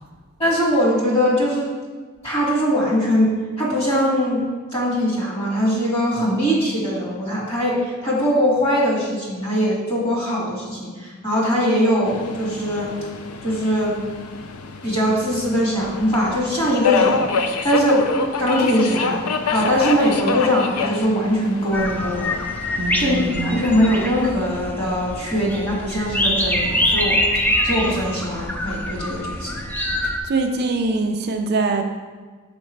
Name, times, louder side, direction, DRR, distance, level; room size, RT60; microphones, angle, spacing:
voice 1, 0.4-1.7 2.2-4.4 4.7-12.9 13.4-14.0 14.8-18.1 18.4-19.2 19.5-22.3 23.0-29.6, equal, 25° left, -5 dB, 2.2 m, -21 dB
Subway metro underground, 12.1-24.1, left 4 dB, 85° left, 0.5 m, -28 dB
sound 1, 21.7-30.2, left 1 dB, 10° left, 0.5 m, -24 dB
voice 2, 22.8-23.7 30.2-31.8, right 3 dB, 50° right, 4 dB, 0.5 m, -23 dB
6.5 x 5.2 x 4.5 m, 1.4 s
head